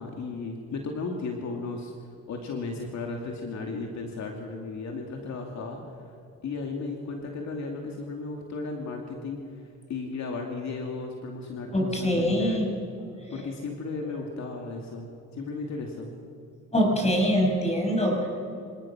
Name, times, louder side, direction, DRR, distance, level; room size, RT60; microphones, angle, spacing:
voice 1, 0.0-1.9 2.3-5.8 6.4-9.4 9.9-12.6 13.3-16.1, left 3 dB, 65° left, 1 dB, 2.5 m, -35 dB
voice 2, 11.7-12.7 13.3-13.4 16.7-18.3, equal, 20° left, 1 dB, 6.8 m, -24 dB
26.5 x 18.5 x 6.1 m, 2.5 s
cardioid pair, 90°, 30 cm